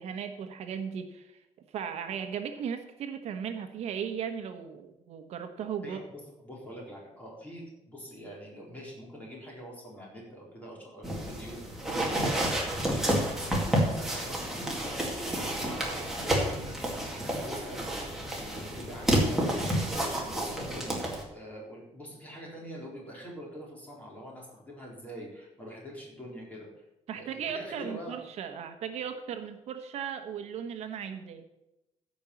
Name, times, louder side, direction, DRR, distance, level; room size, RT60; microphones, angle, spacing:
voice 1, 0.0-1.4 1.7-6.0 27.1-31.4, right 7 dB, 70° right, 7 dB, 1.1 m, -37 dB
voice 2, 5.8-21.1 21.3-26.8 27.1-28.2, equal, 15° left, -3 dB, 4.1 m, -45 dB
sound 1, 11.0-21.2, right 1 dB, 5° right, 2.3 m, -30 dB
15.0 x 5.4 x 7.2 m, 0.92 s
cardioid pair, 175°, 12 cm